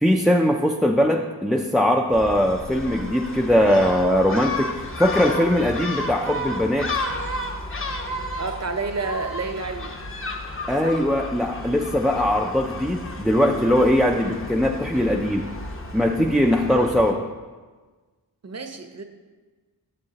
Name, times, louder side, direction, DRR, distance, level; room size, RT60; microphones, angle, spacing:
voice 1, 0.0-6.9 10.7-15.5 15.9-17.2, equal, ahead, 2 dB, 0.3 m, -20 dB
Gull seagull, 2.1-17.1, left 1 dB, 30° left, 0.8 m, -32 dB
voice 2, 8.4-9.9 10.8-11.0 18.4-19.0, right 3 dB, 40° right, 6 dB, 0.7 m, -30 dB
10.5 x 7.3 x 2.8 m, 1.3 s
wide cardioid pair, 95°, 40 cm